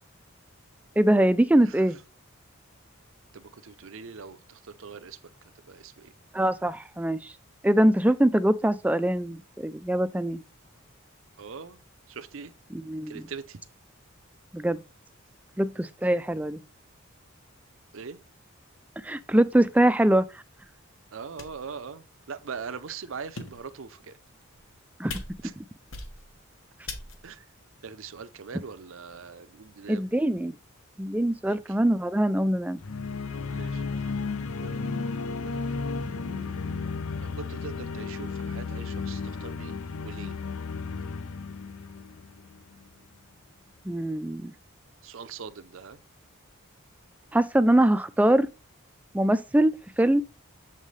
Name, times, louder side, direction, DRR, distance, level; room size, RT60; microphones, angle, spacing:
voice 1, 1.0-2.0 6.3-7.3 7.6-10.4 12.7-13.2 14.5-14.8 15.6-16.6 19.0-20.4 25.0-25.1 29.9-30.5 31.0-32.8 43.9-44.5 47.3-48.5 49.1-50.2, right 1 dB, 5° right, 0.3 m, -23 dB
voice 2, 3.3-5.2 5.7-6.1 11.4-11.8 12.1-12.5 13.1-13.6 17.9-18.2 21.1-24.2 25.4-25.5 27.2-27.5 27.8-30.1 31.4-31.6 33.5-34.1 34.6-36.9 37.4-39.8 40.0-40.4 45.0-46.0, right 5 dB, 65° right, 0.6 m, -42 dB
sound 1, 20.7-20.8 21.4-21.7 22.4-22.5 23.2-23.8 24.4-24.8 25.1-25.6 25.9-26.4 26.9-27.4, left 3 dB, 65° left, 1.3 m, -40 dB
sound 2, 32.8-42.8, left 4 dB, 85° left, 0.6 m, -33 dB
7.3 x 5.4 x 3.2 m
head